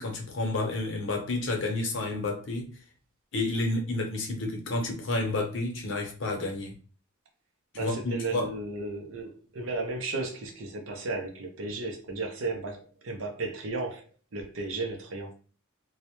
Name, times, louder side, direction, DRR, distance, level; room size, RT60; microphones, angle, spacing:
voice 1, 0.0-2.7 3.3-6.7 7.7-8.5, left 2 dB, 60° left, 0.7 m, -30 dB
voice 2, 7.7-14.1 14.3-15.3, right 3 dB, 70° right, 0.5 m, -34 dB
2.3 x 2.0 x 2.8 m
head